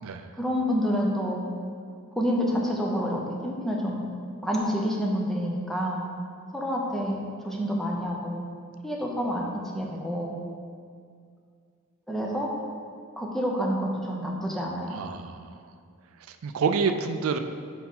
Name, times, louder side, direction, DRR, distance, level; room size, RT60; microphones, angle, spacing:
voice 1, 0.4-1.4 2.2-4.0 4.4-6.0 6.5-8.4 8.8-9.5 9.7-10.4 12.1-12.5 13.2-14.9, equal, ahead, -2 dB, 0.7 m, -28 dB
voice 2, 14.9-15.6 16.3-17.4, right 5 dB, 85° right, 8 dB, 0.4 m, -28 dB
4.7 x 4.5 x 5.5 m, 2.2 s
head